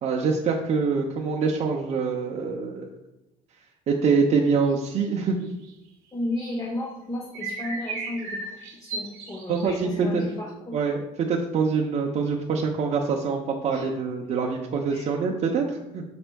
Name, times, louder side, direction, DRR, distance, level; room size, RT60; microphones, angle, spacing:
voice 1, 0.0-2.9 3.9-5.5 9.5-10.2 10.7-15.7 15.9-16.0, right 5 dB, 45° right, -1 dB, 0.6 m, -25 dB
voice 2, 6.1-10.8 13.7-13.9 14.9-15.1, left 1 dB, 20° left, -2 dB, 0.7 m, -34 dB
sound 1, 7.2-9.8, right 3 dB, 85° right, 1.0 m, -35 dB
5.1 x 4.4 x 2.2 m, 0.92 s
supercardioid pair, 85°, 16 cm